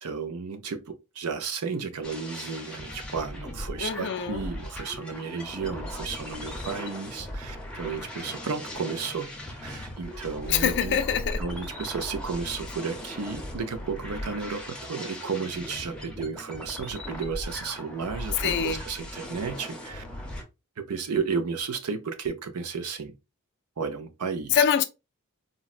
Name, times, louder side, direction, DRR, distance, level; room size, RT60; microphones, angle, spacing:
voice 1, 0.0-9.3 9.6-11.0 11.4-20.0 20.8-23.1 23.8-24.6, right 5 dB, 75° right, 0.5 m, -33 dB
sound 1, 2.0-20.4, left 1 dB, 5° left, 0.6 m, -38 dB
voice 2, 3.8-4.5 10.5-11.4 18.4-18.8 24.5-24.8, left 8 dB, 50° left, 0.3 m, -25 dB
sound 2, 10.4-11.6, equal, 50° right, 0.9 m, -36 dB
3.9 x 2.1 x 2.4 m
head